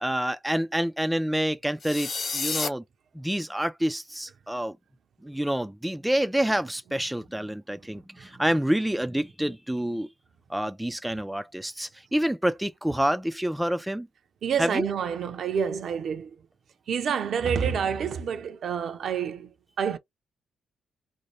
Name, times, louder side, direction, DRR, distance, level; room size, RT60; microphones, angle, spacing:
voice 1, 0.0-2.8 3.1-4.8 5.2-10.1 10.5-14.1 14.6-14.8, right 1 dB, 5° right, 0.3 m, -28 dB
sound 1, 1.8-2.7, left 4 dB, 45° left, 0.8 m, -30 dB
voice 2, 14.4-16.3 16.9-20.0, right 7 dB, 65° right, 0.6 m, -28 dB
2.6 x 2.2 x 3.0 m
supercardioid pair, 70°, 0 cm